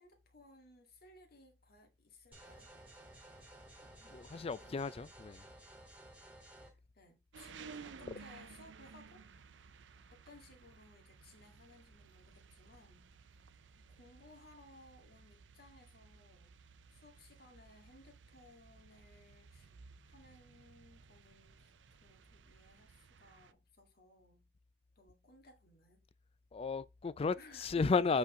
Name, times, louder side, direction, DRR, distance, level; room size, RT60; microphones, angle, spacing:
voice 1, 0.0-2.7 4.6-4.9 6.9-9.7 10.1-13.3 13.8-16.6 16.9-19.7 20.0-24.5 25.0-26.0 27.4-27.9, left 2 dB, 55° left, 2.0 m, -61 dB
sound 1, 2.3-6.7, right 1 dB, 10° right, 2.5 m, -56 dB
voice 2, 4.0-5.5 26.5-28.2, left 4 dB, 35° left, 0.4 m, -34 dB
sound 2, 7.3-23.5, right 5 dB, 85° right, 0.5 m, -57 dB
8.3 x 4.4 x 3.7 m
head